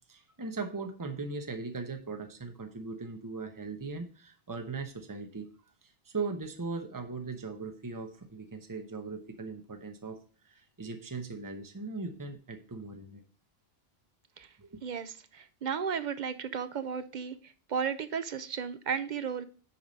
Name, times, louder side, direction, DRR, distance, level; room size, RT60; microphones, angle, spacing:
voice 1, 0.1-5.5 6.1-13.2 14.6-14.8, right 4 dB, 20° right, 5 dB, 0.9 m, -39 dB
voice 2, 15.6-17.3 17.7-19.4, right 7 dB, 55° right, 12 dB, 0.6 m, -33 dB
7.2 x 4.9 x 5.1 m, 0.39 s
omnidirectional pair, 1.0 m